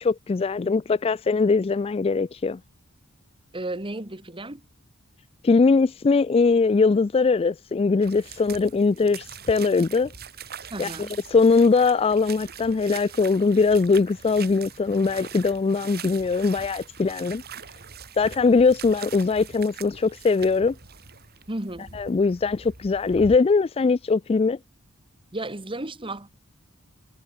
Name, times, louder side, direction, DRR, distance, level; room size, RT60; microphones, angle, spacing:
voice 1, 0.0-2.6 5.4-10.1 10.8-17.4 18.2-20.7 21.9-24.6, left 4 dB, 25° left, 0.3 m, -21 dB
voice 2, 3.5-4.6 10.7-11.1 21.5-21.9 25.3-26.4, right 1 dB, 25° right, 2.2 m, -33 dB
sound 1, 8.0-23.4, right 6 dB, 45° right, 2.9 m, -42 dB
head